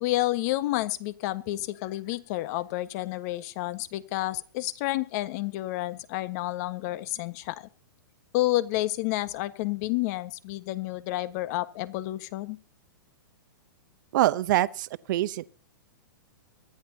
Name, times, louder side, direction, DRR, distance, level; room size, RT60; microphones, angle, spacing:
voice 1, 0.0-7.7 8.3-12.6, left 17 dB, 50° left, 1.4 m, -30 dB
voice 2, 14.1-15.4, right 15 dB, 60° right, 0.8 m, -25 dB
24.0 x 11.0 x 2.8 m
hypercardioid pair, 125°, 12 cm